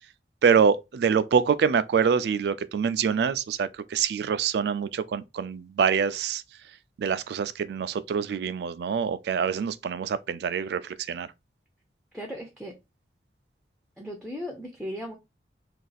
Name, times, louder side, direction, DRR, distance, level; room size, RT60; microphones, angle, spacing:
voice 1, 0.4-6.4 7.0-11.3, right 6 dB, 65° right, 0.3 m, -25 dB
voice 2, 12.1-12.8 14.0-15.2, equal, ahead, 0.4 m, -36 dB
2.5 x 2.4 x 3.9 m
head